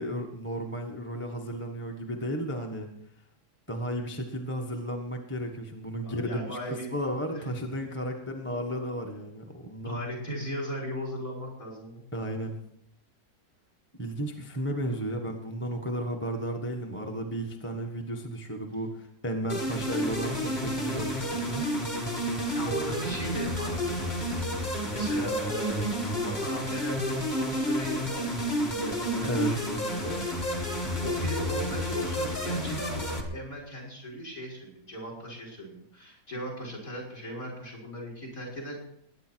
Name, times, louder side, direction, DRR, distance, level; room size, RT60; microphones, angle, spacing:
voice 1, 0.0-2.9 3.7-10.0 12.1-12.6 14.0-21.6 29.3-29.6, right 1 dB, 5° left, 1 dB, 1.3 m, -33 dB
voice 2, 6.0-6.9 7.3-7.5 9.8-12.0 14.9-15.1 17.0-17.1 22.5-24.1 24.6-25.9 26.2-30.2 30.5-38.8, equal, 50° left, -1 dB, 6.3 m, -38 dB
sound 1, 19.5-33.2, equal, 25° left, 2.1 m, -30 dB
21.5 x 9.9 x 4.6 m, 0.71 s
omnidirectional pair, 1.9 m